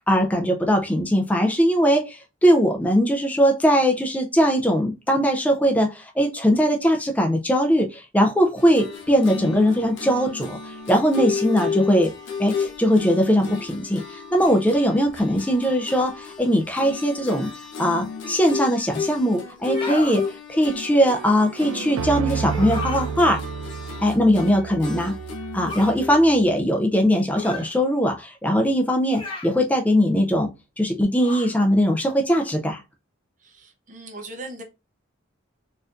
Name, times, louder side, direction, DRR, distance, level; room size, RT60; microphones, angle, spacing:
voice 1, 0.1-12.1 12.4-17.5 17.8-23.4 24.0-25.1 25.5-30.5 30.8-32.8, equal, 5° left, 2 dB, 0.4 m, -20 dB
sound 1, 8.6-26.2, left 5 dB, 60° left, 0.7 m, -33 dB
sound 2, 19.6-20.2 22.4-23.1 25.7-26.0 27.4-27.7 29.1-29.6 31.2-31.6, left 3 dB, 25° left, 1.0 m, -34 dB
sound 3, 21.6-26.6, right 6 dB, 85° right, 0.3 m, -31 dB
voice 2, 33.4-34.6, right 2 dB, 40° right, 4 dB, 0.6 m, -39 dB
4.2 x 2.5 x 2.4 m, 0.26 s
head